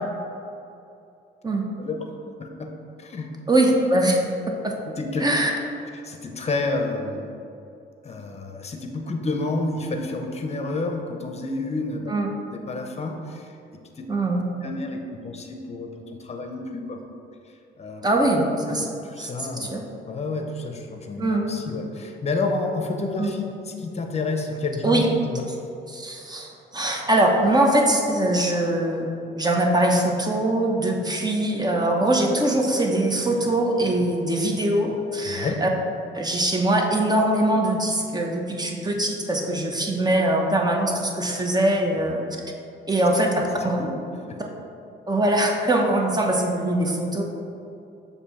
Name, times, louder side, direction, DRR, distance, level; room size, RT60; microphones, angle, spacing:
voice 1, 2.4-2.7 3.0-3.3 4.8-5.2 5.9-7.3 8.0-12.1 12.5-14.1 14.6-17.0 17.8-18.0 18.7-25.4 35.3-35.6 43.8-43.9 44.3-44.4, left 3 dB, 30° left, 3 dB, 0.8 m, -30 dB
voice 2, 3.5-4.2 4.6-4.7 5.2-5.5 12.1-12.3 14.1-14.4 18.0-18.9 19.2-19.8 21.2-21.5 23.2-23.3 24.8-25.1 25.9-29.1 29.3-35.7 36.1-42.2 42.9-43.8 44.4-44.5 45.1-47.2, right 1 dB, 20° right, 1 dB, 0.8 m, -22 dB
6.6 x 2.8 x 5.6 m, 2.7 s
cardioid pair, 90°, 20 cm